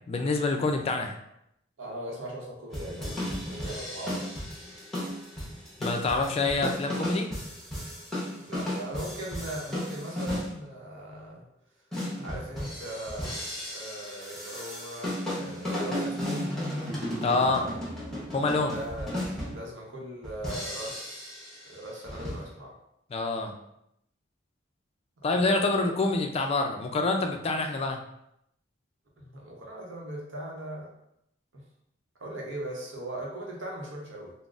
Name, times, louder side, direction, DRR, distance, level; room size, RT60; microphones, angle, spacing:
voice 1, 0.1-1.1 5.8-7.3 17.2-17.7 18.3-18.7 23.1-23.5 25.2-28.0, left 3 dB, 30° left, 4 dB, 0.3 m, -26 dB
voice 2, 1.8-4.4 6.2-6.5 6.9-7.0 8.4-11.4 12.2-13.3 13.7-16.5 17.4-17.8 18.5-22.7 25.2-25.8 29.2-30.9 31.5-31.6 32.2-34.5, right 1 dB, 75° right, -1 dB, 0.8 m, -39 dB
sound 1, 2.7-10.5 11.9-19.6 20.2-21.7 22.0-22.5, left 1 dB, ahead, 0.9 m, -34 dB
3.8 x 2.0 x 2.4 m, 0.78 s
head